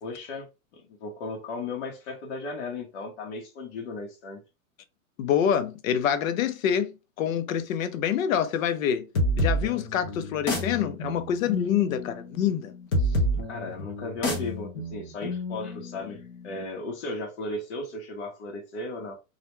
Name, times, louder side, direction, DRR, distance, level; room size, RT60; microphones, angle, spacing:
voice 1, 0.0-4.4 13.5-19.2, left 2 dB, 55° left, 1.0 m, -36 dB
voice 2, 5.2-9.1 9.4-12.7, left 9 dB, 70° left, 0.7 m, -26 dB
sound 1, 9.1-16.5, equal, 20° left, 0.4 m, -29 dB
2.4 x 2.1 x 3.0 m
supercardioid pair, 160°, 42 cm